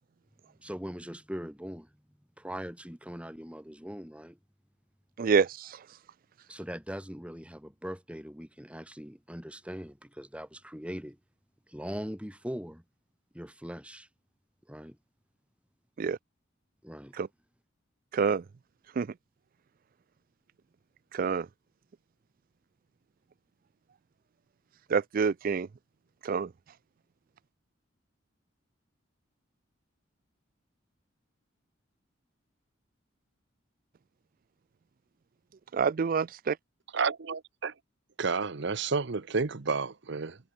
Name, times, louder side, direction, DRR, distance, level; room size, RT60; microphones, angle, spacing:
voice 1, 0.6-1.9 2.4-4.4 6.5-11.2 11.7-12.8 13.3-14.1 14.7-15.0 16.8-17.2, equal, 5° right, 3.6 m, -41 dB
voice 2, 5.2-5.8 16.0-16.2 17.2-17.3 18.1-18.4 19.0-19.1 21.1-21.5 24.9-25.7 26.2-26.5 35.7-36.6, right 5 dB, 45° right, 0.4 m, -27 dB
voice 3, 36.9-37.7 38.2-40.4, right 4 dB, 65° right, 0.8 m, -30 dB
head